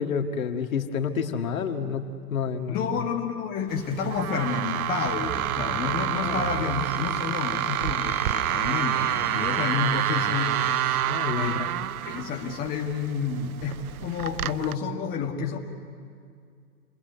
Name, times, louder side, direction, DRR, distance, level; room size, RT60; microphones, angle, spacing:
voice 1, 0.0-2.0 2.3-2.8 6.2-6.5 11.1-11.7, left 6 dB, 60° left, 5 dB, 2.1 m, -29 dB
voice 2, 2.7-10.6 11.4-11.7 12.0-15.6, left 5 dB, 20° left, 0 dB, 1.7 m, -30 dB
sound 1, 3.7-14.7, right 12 dB, 65° right, 0.5 m, -28 dB
Bowed string instrument, 6.1-11.1, equal, 5° right, 6.1 m, -42 dB
28.0 x 22.0 x 8.2 m, 2.2 s
hypercardioid pair, 140°, 46 cm